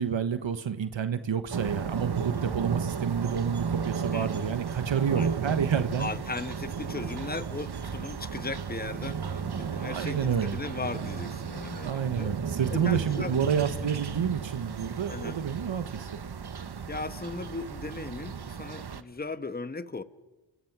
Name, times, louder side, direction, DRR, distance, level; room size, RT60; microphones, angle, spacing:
voice 1, 0.0-6.1 9.8-10.6 11.8-16.1, right 7 dB, 75° right, 10 dB, 1.3 m, -29 dB
sound 1, 1.5-19.0, right 6 dB, 55° right, 1.3 m, -34 dB
voice 2, 6.0-12.3 12.7-13.3 15.1-15.4 16.9-20.0, left 3 dB, 20° left, 11 dB, 1.3 m, -37 dB
30.0 x 23.5 x 6.1 m, 1.1 s
cardioid pair, 45°, 46 cm